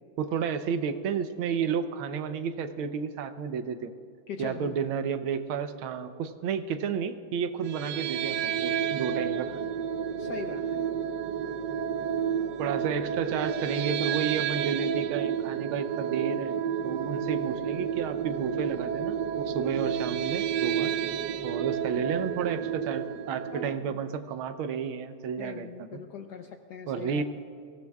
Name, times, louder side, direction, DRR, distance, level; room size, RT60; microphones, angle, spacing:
voice 1, 0.2-3.9 4.4-9.7 12.6-16.6 16.8-20.9 21.4-25.7 26.9-27.2, right 7 dB, 90° right, 9 dB, 1.6 m, -31 dB
voice 2, 4.3-4.8 10.2-10.8 23.5-24.1 25.4-27.2, left 7 dB, 65° left, 6 dB, 1.1 m, -41 dB
sound 1, 7.6-23.8, right 8 dB, 70° right, 1.1 m, -31 dB
22.5 x 16.5 x 2.3 m, 2.5 s
omnidirectional pair, 2.2 m